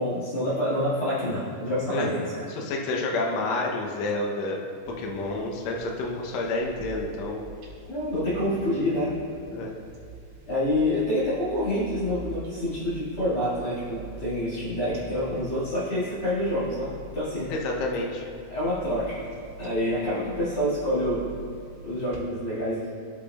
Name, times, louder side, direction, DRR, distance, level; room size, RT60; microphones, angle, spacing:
voice 1, 0.0-2.5 7.9-9.1 10.5-17.5 18.5-19.2 19.6-21.3 21.8-22.9, left 1 dB, 40° left, -11 dB, 2.4 m, -27 dB
voice 2, 2.5-4.6 5.0-7.4 9.5-9.7 17.5-18.2, left 2 dB, 90° left, -1 dB, 1.5 m, -29 dB
sound 1, 4.8-22.2, right 3 dB, 55° right, 2.9 m, -44 dB
15.5 x 5.3 x 2.3 m, 2.4 s
omnidirectional pair, 4.3 m